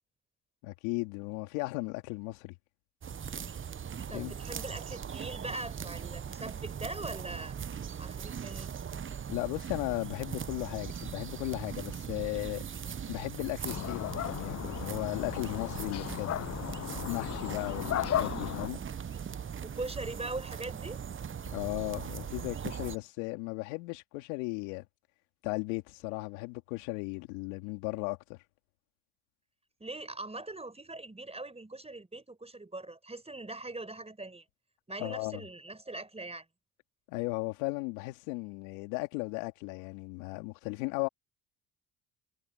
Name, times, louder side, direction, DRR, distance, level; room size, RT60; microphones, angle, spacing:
voice 1, 0.6-2.5 4.1-4.3 9.3-16.4 17.1-18.8 21.5-24.8 25.4-28.4 35.0-35.4 37.1-41.1, left 25 dB, 85° left, 3.0 m, -36 dB
sound 1, 3.0-23.0, right 7 dB, 30° right, 0.9 m, -40 dB
voice 2, 4.1-7.5 8.0-8.7 19.6-21.0 29.8-34.4 34.9-36.5, right 2 dB, 15° right, 4.9 m, -41 dB
sound 2, 13.7-18.7, left 11 dB, 35° left, 0.6 m, -35 dB
supercardioid pair, 65°, 41 cm